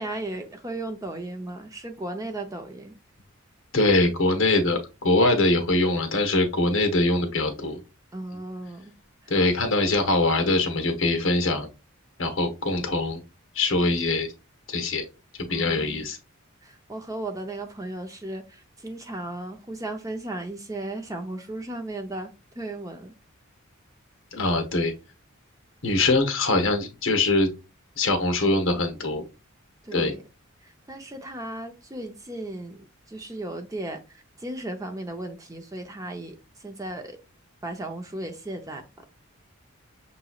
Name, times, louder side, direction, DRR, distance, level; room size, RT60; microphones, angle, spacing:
voice 1, 0.0-2.9 8.1-8.9 15.5-16.0 16.6-22.3 22.6-23.1 29.8-30.2 30.6-37.2 37.6-39.0, right 2 dB, 15° right, 4 dB, 0.5 m, -36 dB
voice 2, 3.7-7.8 9.3-11.7 12.2-13.2 13.5-14.3 14.7-15.0 15.4-16.2 24.3-24.9 25.8-27.5 28.0-29.2 29.9-30.1, left 2 dB, 60° left, 6 dB, 1.0 m, -23 dB
6.0 x 2.9 x 2.3 m, 0.28 s
head